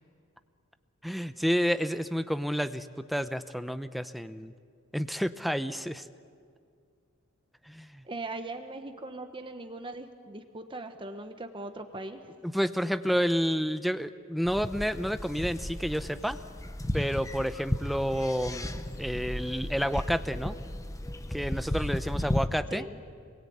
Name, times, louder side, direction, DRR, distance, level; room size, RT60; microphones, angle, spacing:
voice 1, 1.0-4.5 4.9-6.1 7.7-8.0 12.4-16.4 16.9-18.7 19.0-20.5 21.3-22.8, equal, ahead, 11 dB, 0.7 m, -30 dB
voice 2, 8.0-12.3 22.7-23.0, right 2 dB, 25° right, 7 dB, 1.2 m, -40 dB
sound 1, 14.4-22.5, left 1 dB, 15° left, 0.9 m, -34 dB
28.0 x 21.5 x 8.6 m, 2.2 s
head